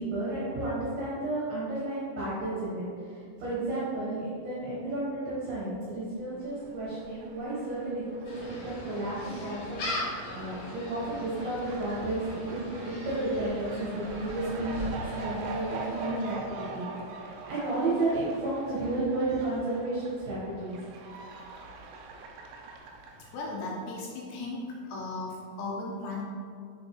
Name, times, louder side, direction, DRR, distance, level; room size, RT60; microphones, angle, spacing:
voice 1, 0.0-12.6 12.9-16.9 17.2-20.8, right 2 dB, 65° right, -8 dB, 2.9 m, -32 dB
Fowl, 6.3-23.6, right 3 dB, 85° right, 2.5 m, -44 dB
Gull seagull, 8.2-16.1, left 1 dB, 55° left, 2.4 m, -40 dB
voice 2, 23.2-26.2, left 2 dB, 80° left, -2 dB, 2.6 m, -36 dB
6.8 x 6.3 x 3.2 m, 2.3 s
omnidirectional pair, 5.7 m